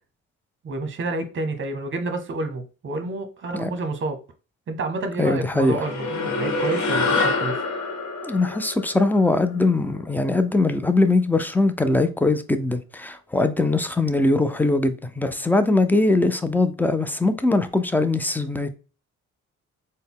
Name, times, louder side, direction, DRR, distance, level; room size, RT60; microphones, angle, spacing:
voice 1, 0.6-4.2 4.7-7.6, right 2 dB, 40° right, 0.9 m, -29 dB
voice 2, 5.2-5.8 8.2-18.7, left 2 dB, 5° left, 0.4 m, -21 dB
sound 1, 5.6-10.3, left 3 dB, 70° left, 1.0 m, -26 dB
4.1 x 2.1 x 3.5 m
cardioid pair, 90°, 30 cm